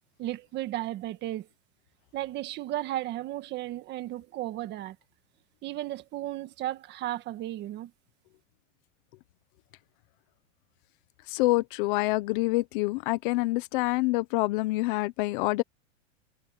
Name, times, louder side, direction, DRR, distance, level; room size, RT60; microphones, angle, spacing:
voice 1, 0.2-1.5 2.1-5.0 5.6-7.9, right 14 dB, 30° right, 1.6 m, -34 dB
voice 2, 11.3-15.6, left 21 dB, 40° left, 1.0 m, -26 dB
supercardioid pair, 160°, 38 cm